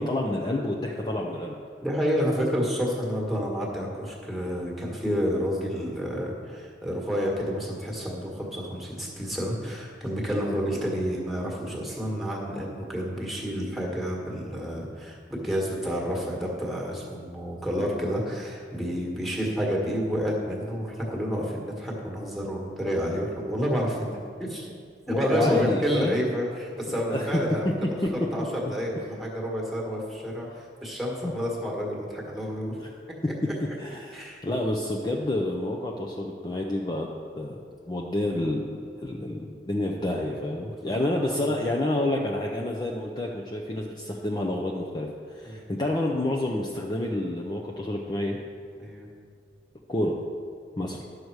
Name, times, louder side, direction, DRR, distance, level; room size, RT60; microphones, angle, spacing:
voice 1, 0.0-1.6 25.1-26.2 26.9-27.4 27.8-28.5 31.2-31.3 32.8-32.9 33.2-33.3 33.8-37.1 37.4-48.4 49.9-50.2 50.8-51.0, left 1 dB, 25° left, -1 dB, 0.5 m, -29 dB
voice 2, 1.8-24.7 25.1-27.7 28.1-30.5 30.8-32.8 34.1-34.4 40.3-40.7 41.0-41.6 45.4-45.6 48.8-49.1, equal, ahead, -2 dB, 1.5 m, -29 dB
11.0 x 6.5 x 4.7 m, 2.2 s
head